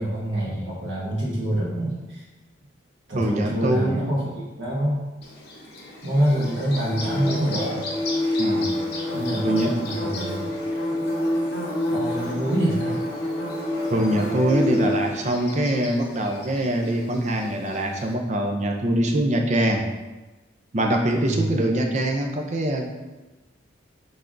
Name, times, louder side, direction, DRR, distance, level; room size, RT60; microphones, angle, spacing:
voice 1, 0.0-2.2 3.1-5.0 6.0-7.8 9.1-10.5 11.9-13.0 21.2-21.6, right 1 dB, 75° right, -5 dB, 1.4 m, -26 dB
voice 2, 3.1-4.1 8.4-8.7 9.4-9.7 13.9-19.8 20.7-22.9, right 1 dB, 35° right, 2 dB, 0.5 m, -23 dB
Bird / Buzz, 5.2-18.1, equal, 55° left, 0.8 m, -36 dB
sound 1, 6.8-15.2, left 1 dB, 20° left, 0.8 m, -28 dB
5.7 x 3.4 x 2.6 m, 1.1 s
head